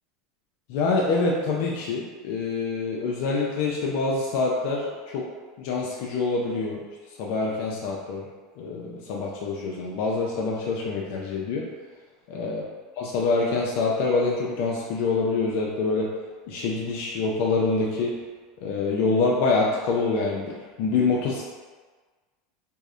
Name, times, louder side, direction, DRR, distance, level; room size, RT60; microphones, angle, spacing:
voice 1, 0.7-4.9 5.1-5.3 5.6-6.8 7.2-8.2 8.6-11.6 12.3-12.6 13.0-16.1 16.5-18.1 18.6-21.5, left 3 dB, 65° left, -3 dB, 0.3 m, -25 dB
2.6 x 2.0 x 2.4 m, 1.4 s
supercardioid pair, 120°, 0 cm